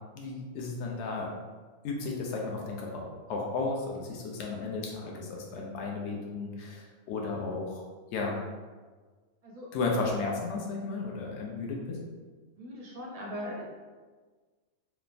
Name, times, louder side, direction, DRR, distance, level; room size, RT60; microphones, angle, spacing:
voice 1, 0.1-1.3 1.8-7.8 8.1-8.4 9.7-12.0, left 3 dB, 70° left, -1 dB, 0.8 m, -34 dB
voice 2, 12.6-13.6, equal, 50° right, -3 dB, 0.4 m, -39 dB
3.2 x 2.0 x 2.4 m, 1.4 s
omnidirectional pair, 1.3 m